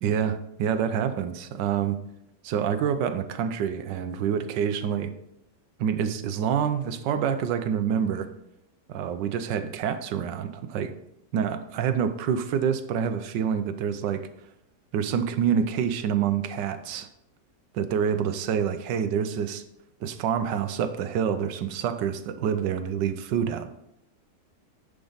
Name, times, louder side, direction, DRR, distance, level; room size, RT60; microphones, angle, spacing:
voice 1, 0.0-2.0 2.4-5.1 5.8-8.3 8.9-10.9 11.3-14.3 14.9-17.1 17.7-19.6 20.0-23.7, right 8 dB, 80° right, 10 dB, 1.3 m, -27 dB
10.5 x 5.0 x 3.9 m, 0.82 s
omnidirectional pair, 1.9 m